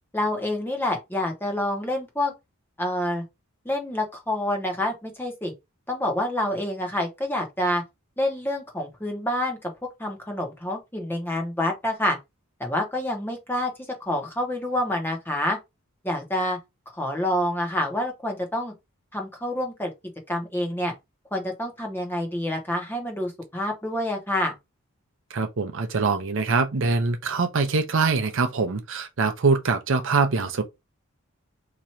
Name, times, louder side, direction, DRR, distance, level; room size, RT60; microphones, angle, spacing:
voice 1, 0.1-2.3 2.8-3.2 3.6-5.5 5.9-7.8 8.2-9.7 10.0-12.2 12.6-13.7 14.0-15.6 16.0-16.6 17.0-18.7 19.1-19.9 20.3-20.9 21.3-24.5, left 1 dB, 10° left, 1.0 m, -27 dB
voice 2, 25.3-30.6, right 4 dB, 60° right, 0.6 m, -23 dB
3.0 x 2.6 x 4.2 m
head